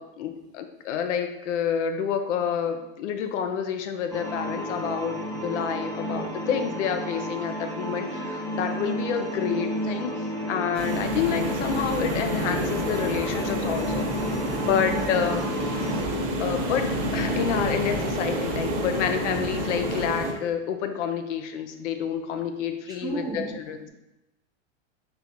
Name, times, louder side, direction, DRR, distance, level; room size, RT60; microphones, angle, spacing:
voice 1, 0.0-14.1 14.5-15.4 16.4-23.8, left 8 dB, 70° left, 7 dB, 0.6 m, -29 dB
sound 1, 4.1-16.0, equal, 10° left, 1.0 m, -32 dB
sound 2, 10.7-20.3, right 1 dB, 45° right, 1.0 m, -29 dB
voice 2, 14.9-15.5 22.9-23.5, right 3 dB, 10° right, -3 dB, 0.5 m, -35 dB
4.3 x 3.3 x 2.7 m, 0.92 s
hypercardioid pair, 115°, 37 cm